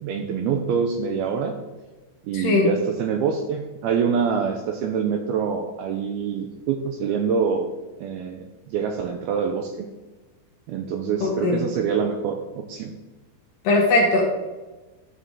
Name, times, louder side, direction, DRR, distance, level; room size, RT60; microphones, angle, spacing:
voice 1, 0.0-1.6 2.2-7.7 8.0-9.9 10.7-12.9, right 6 dB, 90° right, 4 dB, 2.2 m, -25 dB
voice 2, 2.3-2.7 11.2-11.6 13.6-14.3, left 2 dB, 65° left, 0 dB, 2.5 m, -19 dB
12.5 x 6.8 x 3.7 m, 1.2 s
omnidirectional pair, 5.1 m